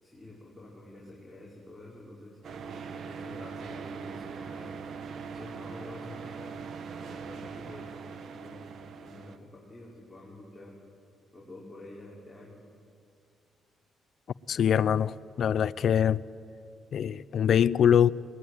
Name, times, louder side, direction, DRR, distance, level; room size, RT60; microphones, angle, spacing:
voice 1, 0.0-2.4 2.9-4.7 5.3-6.6 6.9-10.8 11.3-12.6, left 1 dB, 5° left, 5.4 m, -48 dB
sound 1, 2.4-9.4, right 5 dB, 60° right, 1.4 m, -41 dB
voice 2, 14.5-16.2 16.9-18.1, left 9 dB, 60° left, 0.5 m, -23 dB
21.5 x 19.5 x 9.5 m
cardioid pair, 90°, 0 cm